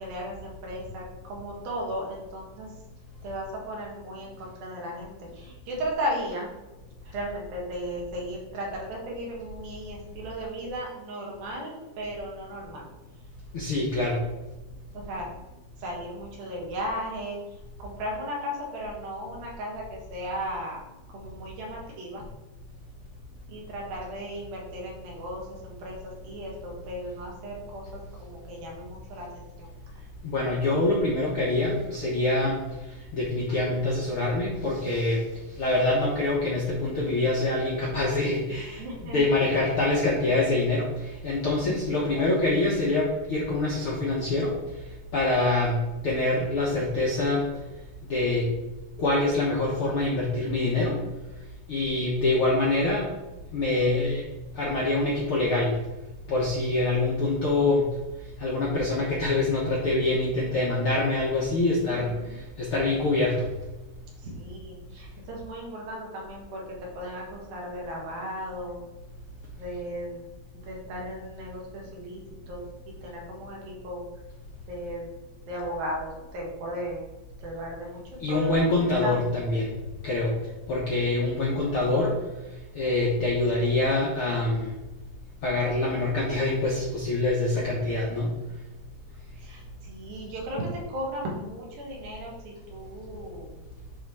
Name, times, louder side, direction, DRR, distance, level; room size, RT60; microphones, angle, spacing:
voice 1, 0.0-2.7 3.2-6.5 7.0-12.8 14.9-15.3 15.8-22.3 23.5-26.0 26.2-29.7 38.8-39.2 41.6-42.3 61.9-62.4 64.2-68.8 69.6-70.2 70.6-72.2 72.5-74.0 74.7-75.1 75.4-77.0 77.4-78.0 78.3-78.6 79.0-79.1 80.3-80.4 89.4-93.5, equal, 75° right, -2 dB, 3.6 m, -36 dB
voice 2, 13.5-14.2 30.2-32.6 33.1-35.2 35.6-38.8 39.1-40.9 41.2-44.5 45.1-47.4 48.1-48.4 49.0-51.0 51.7-53.1 53.5-54.2 54.6-55.7 56.3-57.9 58.4-62.1 62.6-63.4 78.2-79.7 80.0-80.3 80.7-82.1 82.7-84.7 85.4-88.3, left 2 dB, 65° left, -4 dB, 1.3 m, -25 dB
10.0 x 3.8 x 4.8 m, 1.1 s
omnidirectional pair, 4.2 m